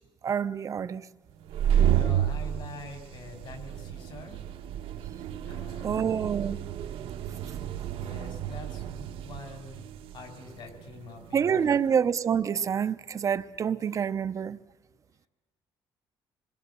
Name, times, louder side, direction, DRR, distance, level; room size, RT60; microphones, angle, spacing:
voice 1, 0.2-1.0 5.8-6.6 11.3-14.6, right 7 dB, 35° right, 0.7 m, -27 dB
sound 1, 1.4-11.8, right 10 dB, 90° right, 1.3 m, -31 dB
voice 2, 1.8-4.4 5.4-6.3 7.8-9.8 10.1-11.8, left 3 dB, 55° left, 5.1 m, -45 dB
26.5 x 21.0 x 6.9 m
cardioid pair, 145°, 9 cm